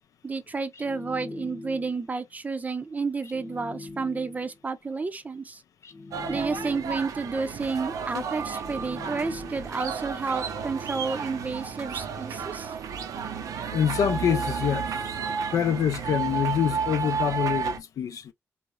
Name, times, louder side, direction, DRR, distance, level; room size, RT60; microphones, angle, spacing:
voice 1, 0.2-5.6 6.3-12.7, right 4 dB, 30° right, 0.5 m, -31 dB
sound 1, 0.7-2.1 3.2-4.6 5.8-7.2 8.5-9.9, left 3 dB, 55° left, 0.8 m, -42 dB
sound 2, 6.1-17.8, right 6 dB, 80° right, 0.4 m, -32 dB
voice 2, 13.7-14.9 15.5-18.3, left 9 dB, 80° left, 0.4 m, -26 dB
2.9 x 2.0 x 2.2 m
cardioid pair, 80°, 6 cm